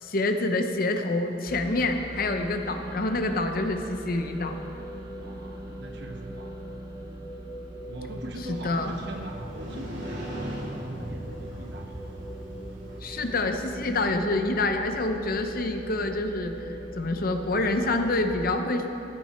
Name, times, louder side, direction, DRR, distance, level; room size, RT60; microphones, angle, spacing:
voice 1, 0.0-4.6 8.5-8.9 13.0-18.8, left 2 dB, 50° left, 6 dB, 0.8 m, -27 dB
sound 1, 1.5-18.3, right 1 dB, 20° right, 1.0 m, -40 dB
voice 2, 5.1-6.6 7.9-11.9, right 1 dB, 65° right, 2 dB, 1.3 m, -41 dB
Motorcycle, 8.3-14.2, right 1 dB, 85° right, 3.0 m, -39 dB
14.5 x 10.5 x 4.4 m, 2.9 s
head